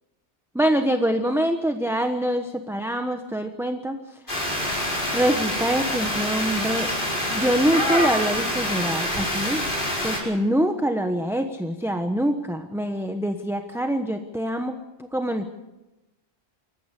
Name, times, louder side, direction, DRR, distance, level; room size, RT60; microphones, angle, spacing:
voice 1, 0.5-4.0 5.1-6.9 7.3-9.6 10.0-14.7 15.1-15.5, equal, ahead, 6 dB, 1.1 m, -24 dB
sound 1, 4.3-10.2, equal, 50° left, 5.4 m, -26 dB
24.5 x 14.5 x 8.3 m, 1.0 s
omnidirectional pair, 1.1 m